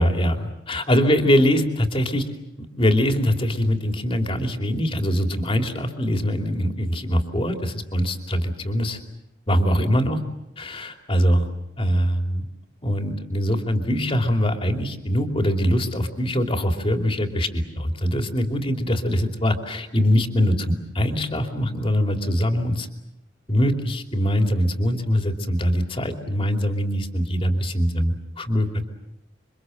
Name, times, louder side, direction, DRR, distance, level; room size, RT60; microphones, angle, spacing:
voice 1, 0.0-2.2 2.8-9.0 9.5-10.2 10.6-11.5 11.8-12.5 12.8-22.9 23.5-28.7, equal, 30° left, 5 dB, 2.9 m, -22 dB
28.5 x 24.5 x 7.8 m, 0.84 s
head